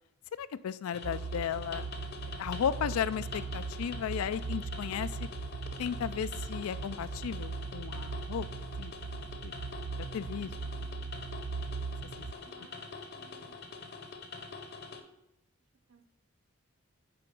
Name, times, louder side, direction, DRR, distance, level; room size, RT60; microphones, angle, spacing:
voice 1, 0.4-1.8 2.4-5.3 5.8-8.5 8.8-8.9 9.4-9.6 10.1-10.5, left 8 dB, 85° left, 16 dB, 0.3 m, -35 dB
sound 1, 0.9-15.0, left 4 dB, 50° left, 0.7 m, -45 dB
sound 2, 1.0-12.3, right 4 dB, 50° right, 0.3 m, -39 dB
voice 2, 12.4-12.9 13.1-14.0 15.9-16.1, right 4 dB, 70° right, 5 dB, 1.0 m, -61 dB
6.9 x 4.6 x 5.2 m, 0.86 s
head